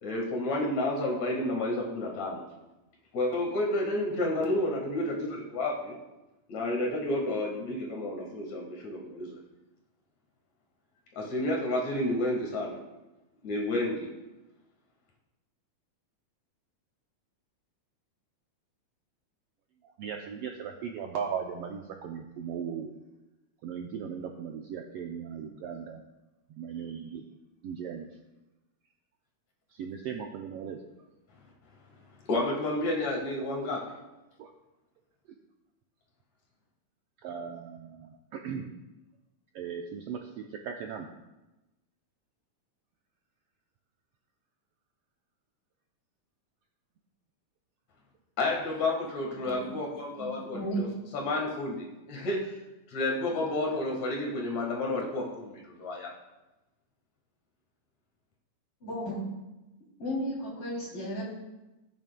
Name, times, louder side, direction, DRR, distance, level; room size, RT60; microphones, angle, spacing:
voice 1, 0.0-2.4 3.1-6.0 6.5-9.4 11.1-12.8 13.4-14.1 32.3-33.9 48.4-50.9 51.1-52.5 52.9-56.1, left 1 dB, 70° left, -1 dB, 2.9 m, -30 dB
voice 2, 19.8-22.9 23.6-26.0 26.5-27.2 27.6-28.1 29.7-30.9 34.4-34.5 37.2-38.7 39.5-41.1, right 7 dB, 90° right, 2 dB, 1.3 m, -38 dB
voice 3, 49.4-49.7 50.2-50.9 58.8-59.2 60.0-61.2, equal, 45° left, -5 dB, 4.0 m, -34 dB
15.0 x 9.0 x 2.2 m, 1.0 s
omnidirectional pair, 3.4 m